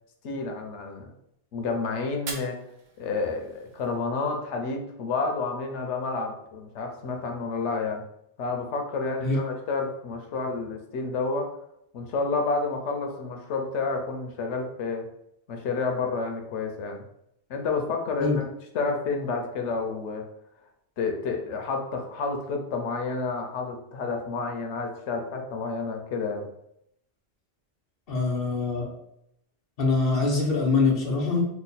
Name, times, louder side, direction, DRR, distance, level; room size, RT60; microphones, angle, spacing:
voice 1, 0.2-1.1 1.5-2.6 3.0-8.0 8.4-11.5 11.9-15.1 15.5-17.0 17.5-18.4 18.7-20.2 21.0-26.5, left 4 dB, 85° left, 3 dB, 1.0 m, -30 dB
Fire, 2.1-4.1, right 4 dB, 50° right, 0.6 m, -42 dB
voice 2, 28.1-28.9 29.8-31.4, left 3 dB, 60° left, 0 dB, 1.0 m, -24 dB
3.1 x 2.2 x 4.0 m, 0.76 s
omnidirectional pair, 1.2 m